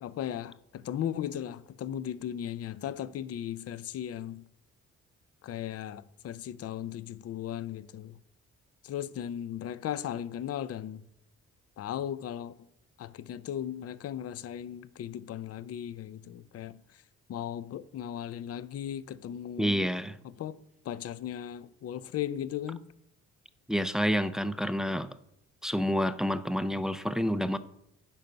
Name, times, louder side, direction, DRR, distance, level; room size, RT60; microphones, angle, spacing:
voice 1, 0.0-4.4 5.4-8.2 8.8-11.0 11.8-12.5 13.0-16.8 17.3-19.9 20.2-20.6 20.8-22.9, left 10 dB, 55° left, 0.5 m, -37 dB
voice 2, 19.6-20.2 23.7-25.1 25.6-27.6, equal, ahead, 0.4 m, -28 dB
10.0 x 4.0 x 5.6 m
cardioid pair, 90°, 30 cm